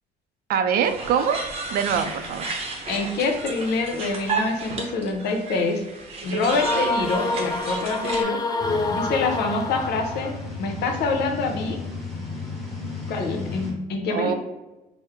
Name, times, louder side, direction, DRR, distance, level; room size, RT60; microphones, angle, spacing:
voice 1, 0.5-1.4 1.7-2.5 14.1-14.3, right 7 dB, 60° right, 8 dB, 0.4 m, -23 dB
sound 1, 0.8-8.2, right 4 dB, 35° right, 0.8 m, -33 dB
voice 2, 2.9-5.8 6.2-8.4 8.9-10.3 10.6-11.8 13.1-14.3, left 3 dB, 75° left, 3 dB, 0.7 m, -26 dB
sound 2, 6.5-10.4, left 2 dB, 25° left, 0.4 m, -27 dB
sound 3, 8.6-13.7, left 3 dB, ahead, 1.2 m, -34 dB
4.3 x 2.1 x 3.5 m, 1.1 s
cardioid pair, 110°, 17 cm